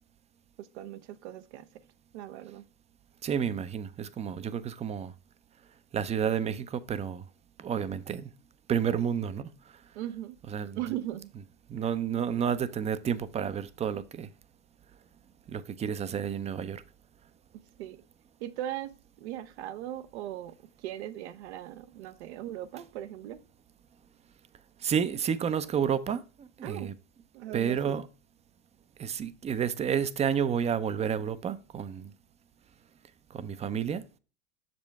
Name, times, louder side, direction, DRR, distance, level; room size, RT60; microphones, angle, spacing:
voice 1, 0.6-1.7 2.1-2.6 9.9-10.4 10.8-11.3 17.8-18.0 18.4-18.9 19.2-20.6 20.8-23.4 26.6-26.9 27.3-28.0, right 12 dB, 75° right, 0.8 m, -38 dB
voice 2, 3.2-5.1 5.9-7.2 7.6-8.3 8.7-9.5 10.5-10.8 11.7-14.3 15.5-16.8 24.8-26.9 27.5-28.1 29.0-32.1 33.3-34.0, right 8 dB, 20° right, 0.5 m, -30 dB
6.5 x 5.2 x 3.4 m
supercardioid pair, 110°, 34 cm